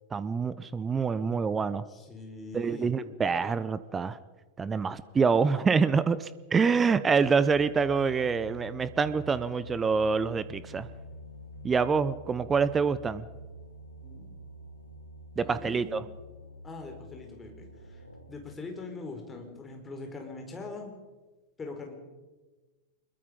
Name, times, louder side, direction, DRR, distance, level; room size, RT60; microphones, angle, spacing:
voice 1, 0.1-1.8 2.5-4.2 4.6-10.9 11.6-13.2 15.4-16.0, right 5 dB, 15° right, 16 dB, 0.7 m, -26 dB
voice 2, 1.9-2.9 14.0-14.3 15.4-16.0 16.6-20.9 21.6-21.9, left 3 dB, 15° left, 3 dB, 4.8 m, -42 dB
sound 1, 7.2-18.5, left 2 dB, 85° left, 1.6 m, -46 dB
24.5 x 22.0 x 5.3 m, 1.2 s
figure-of-eight pair, 90°, 0 cm